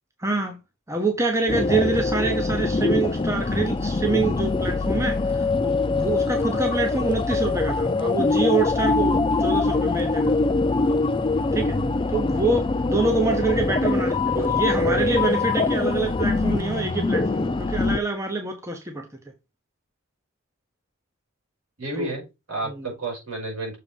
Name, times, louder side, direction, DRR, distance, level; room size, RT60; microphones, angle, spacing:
voice 1, 0.2-0.6 0.9-10.4 11.5-11.8 12.1-19.1 22.0-22.1 22.7-22.9, right 3 dB, 15° right, 0.9 m, -26 dB
sound 1, 1.5-18.0, left 3 dB, 25° left, 0.4 m, -23 dB
voice 2, 21.8-23.8, right 2 dB, 75° right, 5.2 m, -31 dB
6.8 x 4.0 x 5.2 m
head